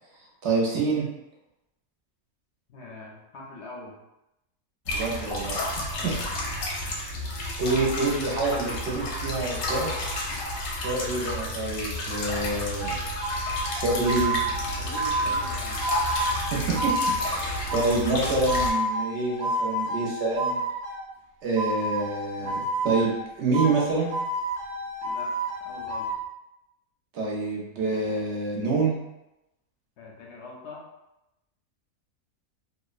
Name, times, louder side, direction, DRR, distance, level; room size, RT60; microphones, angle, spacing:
voice 1, 0.4-1.1 4.9-5.7 6.0-6.1 7.6-9.9 10.8-12.9 13.7-14.4 16.5-16.9 17.2-20.6 21.4-22.6 22.8-24.1 27.1-29.0, right 3 dB, 65° right, -2 dB, 0.8 m, -27 dB
voice 2, 2.7-4.0 5.9-6.3 14.8-15.8 22.3-22.5 25.0-25.3 25.6-26.1 30.0-30.8, left 3 dB, 65° left, -2 dB, 0.7 m, -42 dB
sound 1, 4.9-18.7, left 1 dB, 85° left, 1.1 m, -31 dB
sound 2, 12.8-21.1 21.6-23.3 23.5-26.2, right 1 dB, 90° right, 0.4 m, -30 dB
2.6 x 2.1 x 2.4 m, 0.90 s
omnidirectional pair, 1.5 m